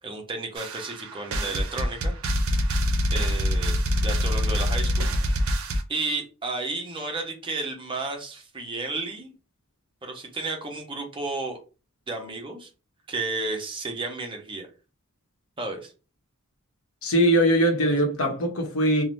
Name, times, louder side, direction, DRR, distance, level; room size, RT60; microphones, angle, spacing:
voice 1, 0.0-2.1 3.1-5.1 5.9-9.3 10.0-11.6 12.1-12.7 13.1-14.7 15.6-15.9, right 3 dB, 25° right, 0.7 m, -32 dB
sound 1, 0.6-5.8, equal, 70° right, 0.5 m, -25 dB
voice 2, 17.0-19.0, right 1 dB, 80° left, 0.8 m, -21 dB
2.6 x 2.1 x 3.1 m
head